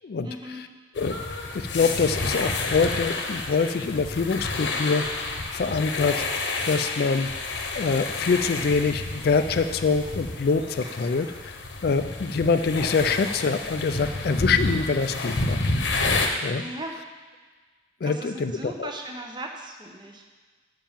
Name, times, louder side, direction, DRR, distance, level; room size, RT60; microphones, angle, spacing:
voice 1, 0.2-0.6 16.5-17.1 18.0-20.3, right 1 dB, 25° right, 3 dB, 0.9 m, -38 dB
sound 1, 1.0-16.3, left 2 dB, 85° left, 1.0 m, -30 dB
voice 2, 1.5-5.0 5.5-6.3 6.7-7.3 7.7-15.7 16.4-16.6 18.0-18.9, left 4 dB, 55° left, 9 dB, 0.4 m, -25 dB
7.3 x 5.7 x 7.2 m, 1.4 s
head